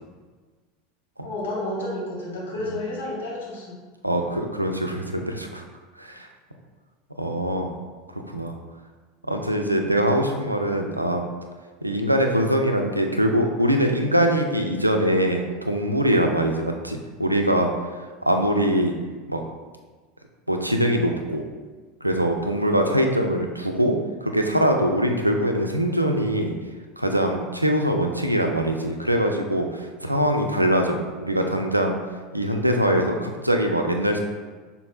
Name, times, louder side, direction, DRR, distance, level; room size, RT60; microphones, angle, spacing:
voice 1, 1.2-3.8, left 1 dB, 70° left, -4 dB, 1.1 m, -31 dB
voice 2, 4.0-5.6 6.0-6.3 7.2-7.8 8.1-8.5 9.3-11.2 11.8-17.7 18.3-18.9 19.3-19.4 20.5-21.4 22.0-26.5 27.0-32.0 32.3-34.2, equal, 90° right, 3 dB, 0.4 m, -23 dB
5.8 x 3.6 x 2.3 m, 1.4 s
figure-of-eight pair, 75°, 0 cm